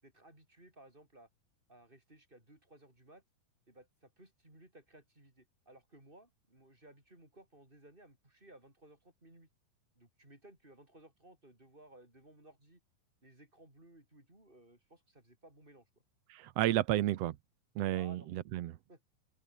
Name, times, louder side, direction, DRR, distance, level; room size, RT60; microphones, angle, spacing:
voice 1, 0.0-1.3 1.7-3.2 3.7-9.5 10.0-12.8 13.2-16.0 17.9-18.3 18.9-19.0, right 1 dB, 15° right, 7.1 m, -59 dB
voice 2, 16.3-17.4 17.8-18.7, right 14 dB, 85° right, 1.4 m, -32 dB
omnidirectional pair, 4.1 m